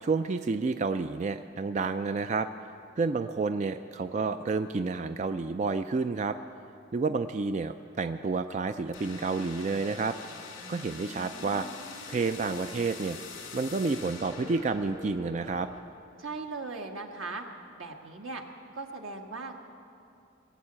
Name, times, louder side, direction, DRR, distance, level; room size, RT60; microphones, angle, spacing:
voice 1, 0.0-2.5 3.0-6.4 6.9-10.2 10.7-11.7 12.1-13.2 13.5-15.7, right 4 dB, 35° right, 9 dB, 0.3 m, -30 dB
sound 1, 8.9-15.8, left 4 dB, 65° left, 2.4 m, -44 dB
voice 2, 16.2-17.4 17.8-18.4 18.7-19.6, right 3 dB, 85° right, 2 dB, 1.4 m, -38 dB
20.5 x 7.2 x 8.6 m, 2.6 s
head